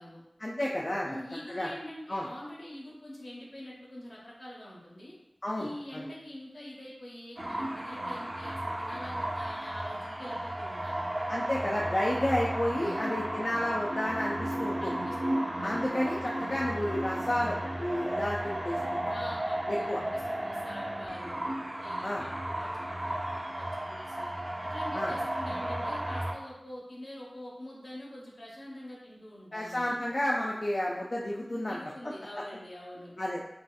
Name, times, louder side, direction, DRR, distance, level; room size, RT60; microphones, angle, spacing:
voice 1, 0.4-1.2 1.5-1.7 2.1-2.3 5.4-6.0 11.3-14.9 15.6-19.0 19.7-20.0 22.0-22.2 24.9-25.1 29.5-31.8 33.2-33.4, left 1 dB, 55° left, -3 dB, 0.3 m, -31 dB
voice 2, 1.0-5.1 5.6-11.1 12.8-13.3 14.8-15.8 19.1-21.5 21.8-24.3 24.7-29.9 31.7-33.1, left 1 dB, 80° left, -4 dB, 0.9 m, -45 dB
sound 1, 7.4-26.3, right 1 dB, 35° right, 0.5 m, -34 dB
3.1 x 2.7 x 2.2 m, 0.89 s
wide cardioid pair, 55°, 0 cm